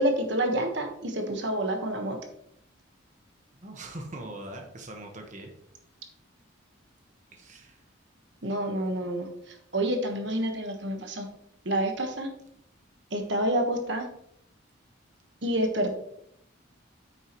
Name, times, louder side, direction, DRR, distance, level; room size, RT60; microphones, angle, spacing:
voice 1, 0.0-2.2 8.4-11.3 11.6-12.3 13.1-14.1 15.4-15.9, right 1 dB, 60° right, 4 dB, 1.3 m, -28 dB
voice 2, 3.5-5.5 7.3-7.8, right 1 dB, 40° right, 2 dB, 1.3 m, -42 dB
9.3 x 9.1 x 3.0 m, 0.73 s
head